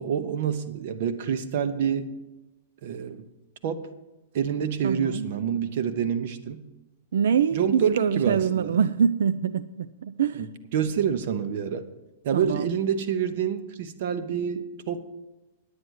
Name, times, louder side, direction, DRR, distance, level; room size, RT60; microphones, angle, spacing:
voice 1, 0.0-2.1 2.8-3.2 3.6-3.9 4.3-6.6 7.5-8.7 10.4-10.5 10.7-11.9 12.2-15.0, right 8 dB, 50° right, 11 dB, 0.9 m, -27 dB
voice 2, 4.8-5.2 7.1-10.5 12.3-12.7, right 7 dB, 90° right, 14 dB, 0.3 m, -24 dB
9.5 x 9.3 x 6.3 m, 1.0 s
supercardioid pair, 165°, 0 cm